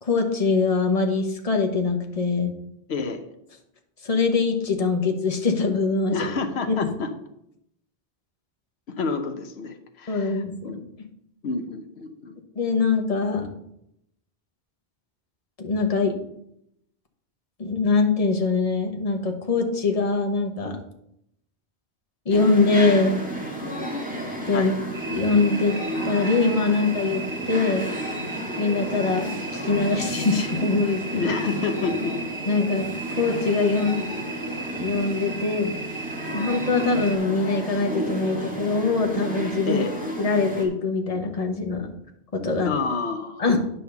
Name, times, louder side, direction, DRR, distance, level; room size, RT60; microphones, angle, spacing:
voice 1, 0.0-2.5 4.0-6.3 6.7-6.8 10.1-10.8 12.5-13.5 15.6-16.2 17.6-20.8 22.2-23.2 24.5-24.7 25.1-25.8 26.0-27.9 28.6-31.2 32.5-34.0 34.7-35.7 36.3-39.8 40.2-41.9 42.3-42.7 43.4-43.6, left 4 dB, 35° left, 3 dB, 1.2 m, -23 dB
voice 2, 2.9-3.2 6.1-7.1 9.0-10.8 11.4-12.4 24.5-24.8 31.1-32.2 39.7-39.9 42.6-43.4, left 4 dB, 85° left, 7 dB, 1.1 m, -28 dB
sound 1, 22.3-40.6, right 1 dB, 10° right, 1.8 m, -32 dB
sound 2, 24.9-37.2, right 4 dB, 30° right, 1.0 m, -37 dB
9.9 x 4.1 x 6.9 m, 0.77 s
omnidirectional pair, 1.1 m